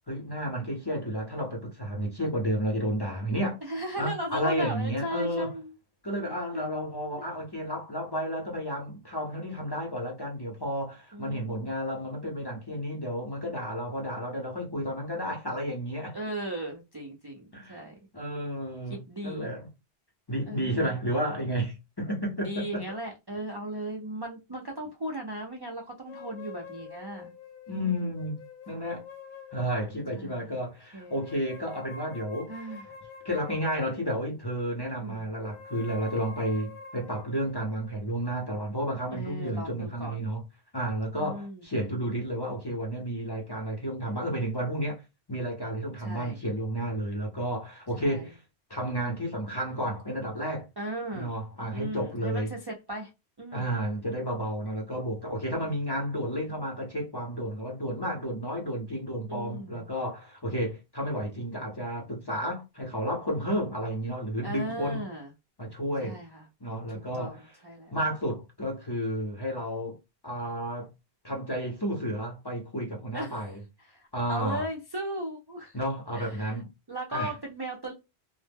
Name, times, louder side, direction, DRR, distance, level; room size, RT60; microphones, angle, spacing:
voice 1, 0.1-3.6 4.0-5.5 6.0-16.2 17.5-17.8 18.1-19.7 20.3-22.9 27.7-28.4 28.7-29.0 29.5-32.6 33.2-40.4 40.7-45.0 45.3-48.4 48.7-50.7 51.1-52.5 53.5-65.0 65.6-66.2 66.6-67.5 67.9-70.0 70.2-70.9 71.2-73.6 74.1-74.6 75.7-76.7 77.1-77.3, equal, 30° left, 0.5 m, -32 dB
voice 2, 3.6-5.7 6.2-6.6 11.1-11.7 16.1-18.0 18.9-19.5 20.5-21.0 22.4-27.3 27.7-28.0 30.1-30.5 30.9-31.2 32.5-32.8 34.9-35.3 39.1-40.2 41.1-41.6 46.0-46.4 48.0-48.3 50.8-51.3 51.7-53.1 53.4-53.7 59.3-59.9 64.4-65.3 66.0-66.4 67.1-67.4 67.6-68.0 73.1-73.4 73.9-75.8 76.1-76.6 76.9-77.9, right 1 dB, 40° right, 0.3 m, -37 dB
sound 1, 26.1-30.3 31.0-34.4 35.3-39.6, left 5 dB, 55° left, 0.8 m, -48 dB
2.0 x 2.0 x 3.3 m
omnidirectional pair, 1.1 m